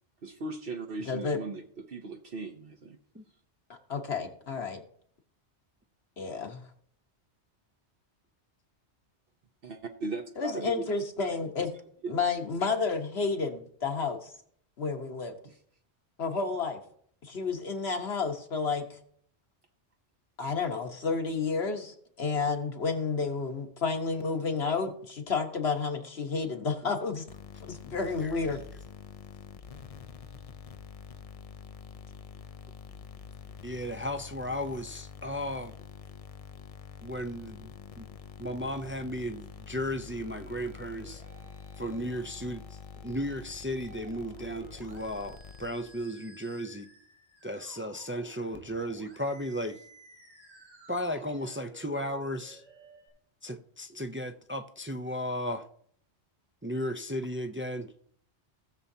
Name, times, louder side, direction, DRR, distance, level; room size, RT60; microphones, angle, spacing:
voice 1, 0.2-3.0 9.6-10.8 12.0-12.1 15.4-15.6, right 3 dB, 60° right, 1.0 m, -38 dB
voice 2, 1.1-1.4 3.9-4.8 6.2-6.6 10.4-11.7 12.1-14.3 14.8-15.3 16.2-16.8 17.2-19.0 20.4-27.3 27.7-28.6, left 4 dB, 65° left, 1.5 m, -31 dB
sound 1, 27.3-46.1, left 6 dB, 45° left, 0.5 m, -47 dB
voice 3, 33.6-35.7 37.0-37.7 38.0-38.1 38.4-41.2 41.8-42.8 43.0-46.9 47.4-49.8 50.9-52.6 53.4-55.6 56.6-57.9, equal, 20° right, 0.3 m, -35 dB
Musical instrument, 40.1-53.1, right 1 dB, 85° right, 3.4 m, -55 dB
18.5 x 7.0 x 2.7 m
omnidirectional pair, 1.1 m